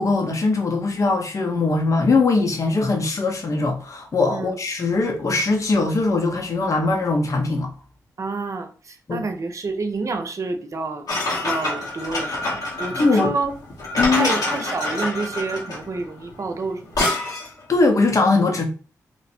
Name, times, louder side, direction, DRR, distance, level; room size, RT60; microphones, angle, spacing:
voice 1, 0.0-7.7 9.1-9.2 12.9-13.3 14.0-14.3 17.7-18.7, left 3 dB, 55° left, 1.0 m, -21 dB
voice 2, 8.2-11.2 11.4-13.5 14.1-17.2, right 3 dB, 50° right, 0.7 m, -29 dB
sound 1, 11.1-17.6, left 2 dB, 75° left, 1.7 m, -26 dB
3.1 x 2.1 x 4.2 m
cardioid pair, 55°, 7 cm